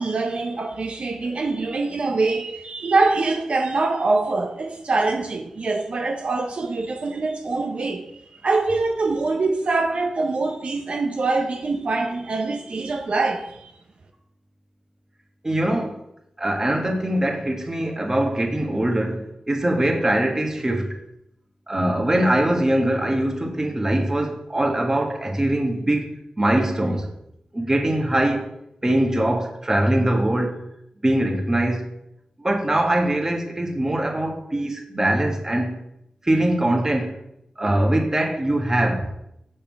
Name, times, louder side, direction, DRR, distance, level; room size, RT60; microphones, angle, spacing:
voice 1, 0.0-13.7, right 3 dB, 60° right, 0.7 m, -24 dB
voice 2, 15.4-16.0 16.4-20.9 21.7-27.1 27.5-28.5 28.8-30.6 31.0-31.8 32.4-35.7 36.2-37.2 37.6-39.1, right 1 dB, 25° right, 1.4 m, -22 dB
6.8 x 5.6 x 5.2 m
wide cardioid pair, 100°, 2 cm